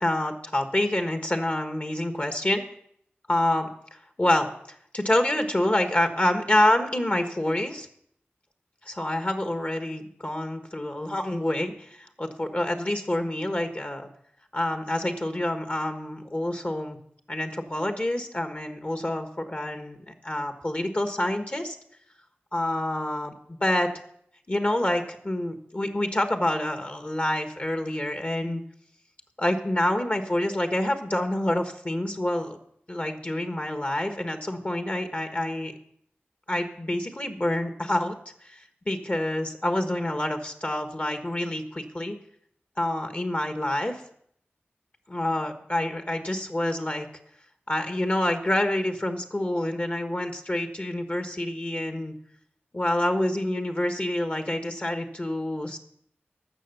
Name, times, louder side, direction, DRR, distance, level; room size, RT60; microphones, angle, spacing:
voice 1, 0.0-2.6 3.3-3.7 4.2-4.5 4.9-7.9 8.8-14.1 14.5-17.0 17.3-21.8 22.5-23.9 24.5-28.6 29.4-32.6 32.9-35.7 36.5-38.1 38.4-42.1 42.8-44.0 45.1-47.1 47.7-52.1 52.7-55.8, left 1 dB, 40° left, 6 dB, 1.4 m, -27 dB
15.0 x 6.2 x 6.9 m, 0.68 s
wide cardioid pair, 55°, 4 cm